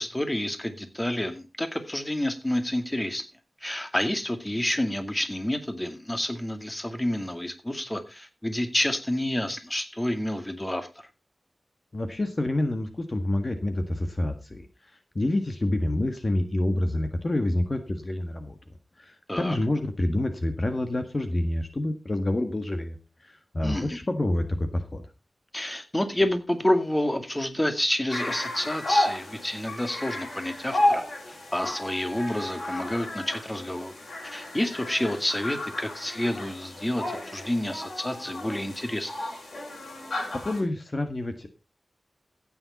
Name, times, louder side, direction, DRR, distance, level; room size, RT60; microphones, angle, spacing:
voice 1, 0.0-3.2 3.6-10.9 19.3-19.6 23.6-24.0 25.5-33.9 34.2-39.1, left 1 dB, 15° left, 7 dB, 2.2 m, -29 dB
voice 2, 11.9-18.6 19.0-25.1 40.3-41.6, left 1 dB, 40° left, 7 dB, 1.6 m, -28 dB
sound 1, 28.1-40.6, left 1 dB, 85° left, 6.4 m, -32 dB
14.5 x 9.1 x 4.1 m, 0.28 s
wide cardioid pair, 70°, 0 cm